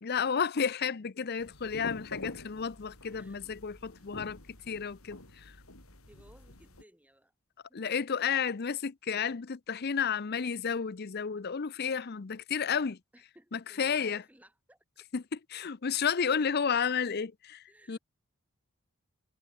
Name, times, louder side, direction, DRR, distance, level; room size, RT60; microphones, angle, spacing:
voice 1, 0.0-5.6 7.7-13.0 13.5-14.2 15.1-18.0, left 6 dB, 50° left, 0.6 m, -32 dB
sound 1, 1.4-6.8, left 2 dB, 90° left, 5.3 m, -47 dB
voice 2, 3.1-3.5 3.9-4.1 6.1-7.3 7.7-7.9 13.1-14.8 16.3-16.7 17.0-17.1 17.7-18.0, right 1 dB, 5° right, 4.8 m, -59 dB
head